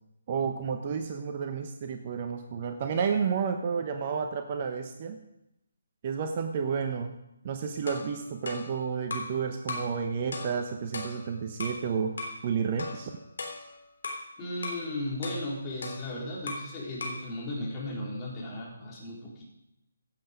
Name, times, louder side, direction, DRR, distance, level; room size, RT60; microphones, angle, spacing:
voice 1, 0.3-5.2 6.0-7.1 7.4-12.1 12.4-13.1, right 6 dB, 35° right, 6 dB, 1.0 m, -31 dB
sound 1, 7.9-9.4 9.7-10.0 10.3-11.8 12.2-12.4 12.8-14.3 14.6-14.9 15.2-16.7 17.0-17.3, left 3 dB, 60° left, 3.1 m, -38 dB
voice 2, 14.4-19.4, left 1 dB, 20° left, -4 dB, 4.0 m, -36 dB
16.0 x 8.0 x 5.2 m, 0.87 s
figure-of-eight pair, 145°, 0 cm